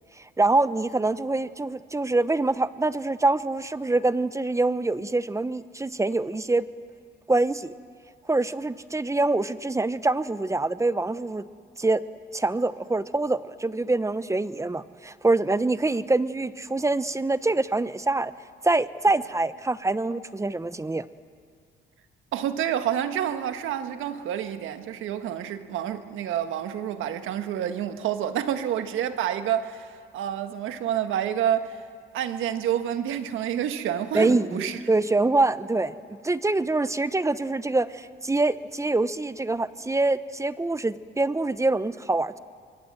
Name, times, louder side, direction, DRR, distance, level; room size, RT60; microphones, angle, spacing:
voice 1, 0.4-6.7 7.3-7.7 8.3-11.4 11.8-12.0 12.3-18.3 18.6-21.0 34.1-35.9 36.2-42.4, right 2 dB, 15° right, 0.8 m, -25 dB
voice 2, 22.3-31.8 32.1-34.8, right 10 dB, 85° right, 1.5 m, -28 dB
25.5 x 23.0 x 7.8 m
cardioid pair, 90°, 20 cm